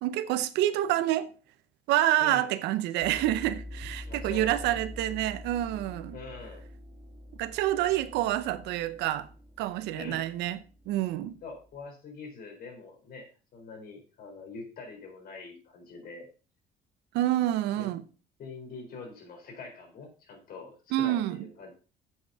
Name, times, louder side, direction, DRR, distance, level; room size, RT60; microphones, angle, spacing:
voice 1, 0.0-1.3 1.9-6.2 7.4-9.3 9.6-10.6 10.9-11.4 17.1-18.0 20.9-21.4, right 14 dB, 90° right, 0.8 m, -27 dB
voice 2, 2.2-2.5 4.1-4.8 6.1-6.7 7.9-8.2 9.9-10.3 11.4-16.3 17.8-17.9 18.4-21.7, left 4 dB, 60° left, 4.1 m, -44 dB
sound 1, 3.0-11.7, left 1 dB, 30° right, 2.5 m, -45 dB
7.6 x 6.3 x 5.5 m
cardioid pair, 110°, 17 cm